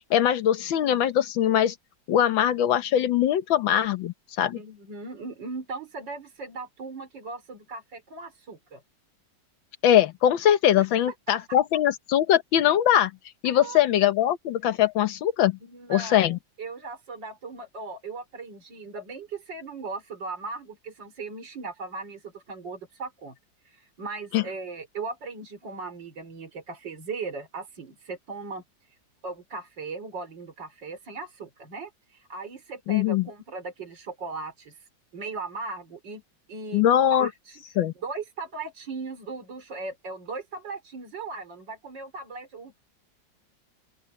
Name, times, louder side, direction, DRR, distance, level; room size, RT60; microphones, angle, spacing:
voice 1, 0.1-1.7 2.1-4.6 9.8-13.1 13.4-15.6 15.9-16.4 24.3-24.4 32.9-33.3 36.7-37.3 37.8-37.9, left 11 dB, 85° left, 1.8 m, -22 dB
voice 2, 4.5-8.8 10.8-10.9 13.4-13.8 15.6-23.3 23.7-28.6 29.2-34.8 35.1-36.2 36.5-36.8 37.1-37.6 38.0-42.8, right 3 dB, 70° right, 4.4 m, -38 dB
open air
omnidirectional pair, 2.1 m